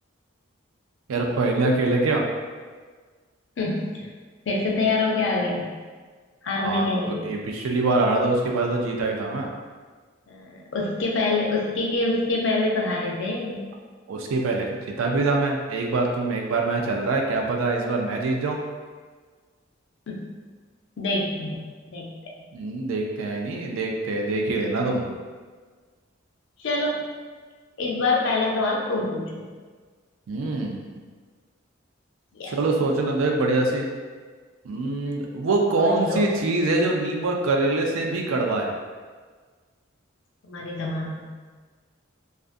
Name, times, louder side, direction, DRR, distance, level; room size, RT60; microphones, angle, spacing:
voice 1, 1.1-2.2 6.6-9.5 14.1-18.6 22.5-25.1 30.3-30.9 32.4-33.9 34.6-38.7, right 2 dB, 85° right, 1 dB, 0.4 m, -24 dB
voice 2, 3.6-4.1 4.4-5.7 6.4-7.2 10.3-13.6 20.1-20.3 21.0-22.1 26.6-27.0 27.8-29.5 32.3-32.6 35.8-36.3 40.4-41.3, left 2 dB, 65° left, -2 dB, 0.5 m, -26 dB
2.4 x 2.4 x 2.5 m, 1.5 s
head